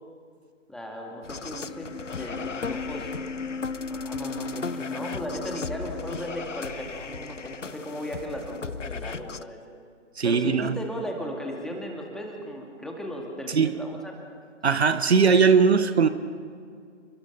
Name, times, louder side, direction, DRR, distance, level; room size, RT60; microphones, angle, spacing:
voice 1, 0.7-3.1 3.9-9.6 10.2-14.2, equal, ahead, 0 dB, 2.4 m, -36 dB
sound 1, 1.2-9.4, left 4 dB, 80° left, 1.0 m, -35 dB
voice 2, 10.2-10.7 13.5-13.7 14.6-16.1, right 5 dB, 60° right, 11 dB, 1.4 m, -19 dB
29.0 x 24.0 x 5.6 m, 2.2 s
figure-of-eight pair, 135°, 37 cm